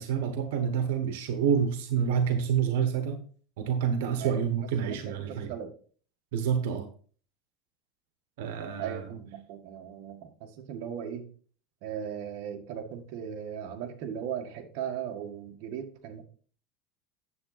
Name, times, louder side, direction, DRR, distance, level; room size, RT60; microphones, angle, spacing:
voice 1, 0.0-3.2 3.6-5.5 6.3-6.9 8.4-9.2, right 7 dB, 85° right, 8 dB, 1.2 m, -28 dB
voice 2, 4.8-5.7 8.8-11.3 11.8-16.2, right 8 dB, 55° right, 3 dB, 1.7 m, -38 dB
9.6 x 7.6 x 4.1 m, 0.43 s
cardioid pair, 160°, 0 cm